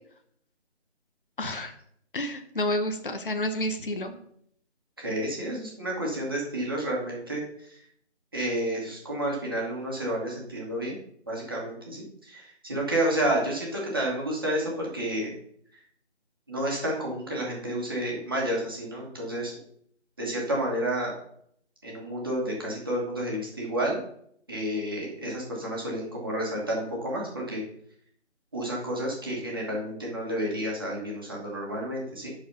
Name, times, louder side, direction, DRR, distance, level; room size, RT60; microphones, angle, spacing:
voice 1, 1.4-1.7 2.1-4.2, left 1 dB, 50° left, 7 dB, 0.9 m, -29 dB
voice 2, 5.0-7.4 8.3-10.9 11.3-15.3 16.5-19.5 20.2-21.1 21.8-24.0 24.5-27.6 28.5-32.3, right 1 dB, 20° right, -3 dB, 1.5 m, -30 dB
10.5 x 4.1 x 5.4 m, 0.67 s
figure-of-eight pair, 175°, 35 cm